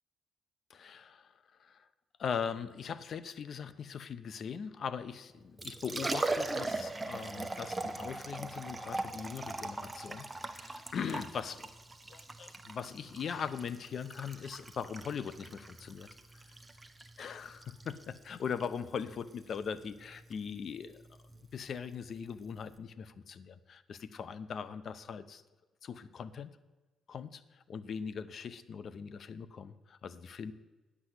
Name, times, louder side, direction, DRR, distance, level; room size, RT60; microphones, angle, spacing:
voice 1, 0.7-1.3 1.6-1.9 2.2-11.7 12.1-16.1 17.2-21.0 21.4-25.4 25.8-26.5 27.1-30.5, left 7 dB, 55° left, 15 dB, 0.6 m, -40 dB
Liquid, 5.4-22.8, right 2 dB, 15° right, 0.8 m, -41 dB
9.5 x 6.1 x 8.0 m, 1.2 s
cardioid pair, 90°, 0 cm